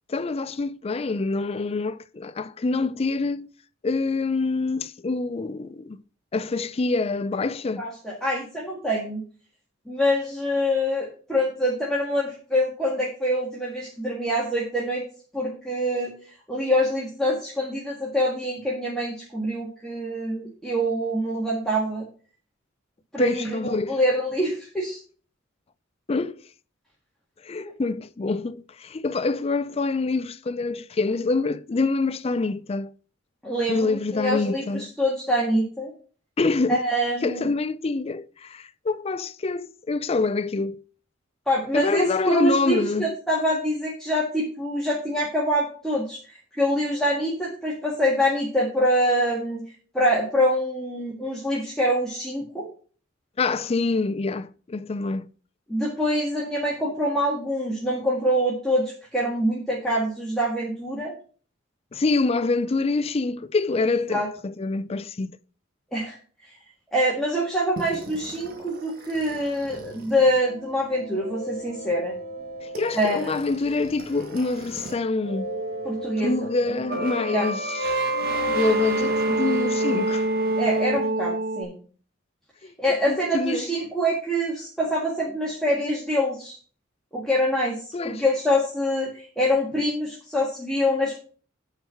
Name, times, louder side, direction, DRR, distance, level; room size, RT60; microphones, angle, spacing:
voice 1, 0.1-3.5 3.8-6.0 6.3-7.8 23.2-24.0 26.1-26.4 27.4-32.9 33.7-34.9 36.4-36.8 37.2-40.8 41.7-43.1 53.4-55.3 61.9-65.4 72.6-75.5 76.2-78.0 78.6-80.3 82.6-82.7 83.1-83.7 87.9-88.2, left 3 dB, 30° left, 0.4 m, -26 dB
voice 2, 7.8-9.2 9.9-15.0 15.3-16.1 16.5-22.1 23.1-25.0 27.6-27.7 33.4-35.9 36.7-37.5 41.5-49.6 49.9-52.7 55.7-61.1 64.1-64.3 65.9-66.2 66.9-72.1 72.9-73.2 75.9-76.5 77.3-77.5 80.6-81.8 82.8-86.6 87.1-91.1, equal, 5° left, 1.8 m, -25 dB
sound 1, 67.8-74.9 75.2-81.6, right 2 dB, 50° right, 1.6 m, -29 dB
9.1 x 4.5 x 5.7 m
head